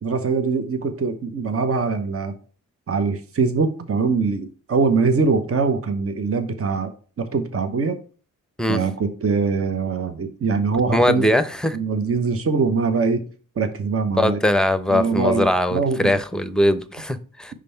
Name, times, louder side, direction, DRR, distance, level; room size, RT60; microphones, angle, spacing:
voice 1, 0.0-2.3 2.9-6.9 7.2-8.0 8.7-11.4 11.7-13.2 13.6-14.4 14.9-16.2, right 4 dB, 45° right, 1.0 m, -22 dB
voice 2, 10.9-11.8 14.2-17.5, left 1 dB, ahead, 0.7 m, -20 dB
5.1 x 3.8 x 5.7 m
cardioid pair, 55°, 33 cm